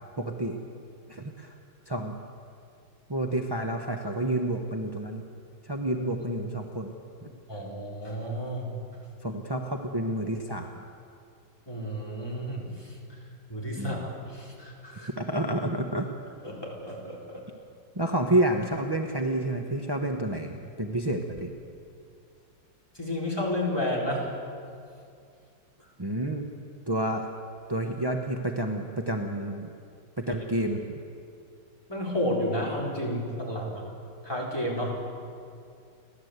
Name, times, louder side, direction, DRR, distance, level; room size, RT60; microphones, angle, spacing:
voice 1, 0.2-0.6 1.1-1.6 1.9-2.1 3.1-5.2 5.6-7.3 9.2-10.8 13.8-14.1 15.2-16.3 17.9-21.5 26.0-26.5 26.9-27.3 27.7-29.7 30.2-31.0, right 1 dB, 25° right, 2 dB, 0.5 m, -29 dB
voice 2, 7.5-8.7 11.7-13.2 13.5-15.1 16.4-17.4 22.9-24.3 31.9-33.8 34.2-35.0, left 1 dB, 10° left, -3 dB, 4.1 m, -31 dB
30.0 x 12.0 x 8.1 m, 2.4 s
omnidirectional pair, 2.2 m